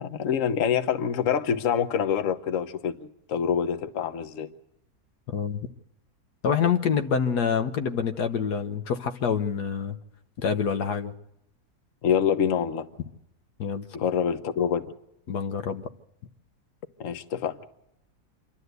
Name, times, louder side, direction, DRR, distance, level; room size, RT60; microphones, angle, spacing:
voice 1, 0.0-4.5 12.0-12.9 13.9-14.9 17.0-17.6, left 8 dB, 55° left, 1.3 m, -26 dB
voice 2, 5.3-5.6 6.4-10.0 10.4-11.1 13.6-13.9 15.3-15.9, left 7 dB, 85° left, 1.6 m, -26 dB
26.5 x 12.5 x 8.1 m
omnidirectional pair, 1.7 m